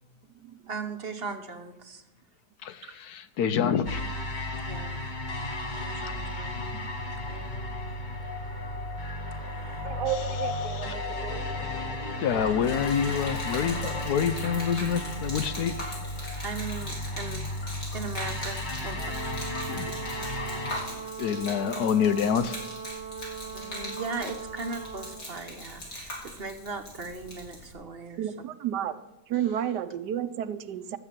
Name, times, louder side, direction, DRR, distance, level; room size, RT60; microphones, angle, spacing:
voice 1, 0.7-2.0 2.8-3.0 4.5-5.0 5.8-6.6 7.2-7.7 9.4-10.0 16.4-17.4 17.9-19.3 23.5-28.2, right 4 dB, 40° right, 6 dB, 1.0 m, -38 dB
voice 2, 2.6-4.0 10.1-10.2 10.6-10.9 12.2-16.0 19.7-19.9 21.2-22.6, left 7 dB, 70° left, 12 dB, 1.2 m, -27 dB
sound 1, 3.9-20.8, left 1 dB, 30° left, 1.2 m, -34 dB
voice 3, 9.8-11.4 28.2-31.0, right 10 dB, 80° right, 12 dB, 1.3 m, -32 dB
Gurgling / Liquid, 12.3-27.7, left 1 dB, 50° left, 3.9 m, -41 dB
Brass instrument, 18.9-25.3, right 6 dB, 10° left, 1.5 m, -40 dB
13.0 x 8.1 x 7.4 m, 0.93 s
omnidirectional pair, 1.8 m